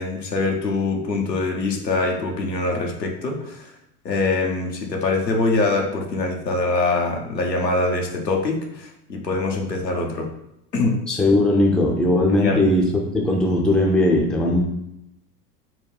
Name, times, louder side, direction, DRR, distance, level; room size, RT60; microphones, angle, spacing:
voice 1, 0.0-3.7 4.0-10.3 10.7-10.9 12.3-12.6, left 3 dB, 90° left, 1 dB, 0.9 m, -23 dB
voice 2, 11.1-12.9 13.1-14.6, left 1 dB, ahead, -1 dB, 0.5 m, -18 dB
3.9 x 2.3 x 4.5 m, 0.84 s
figure-of-eight pair, 85°, 48 cm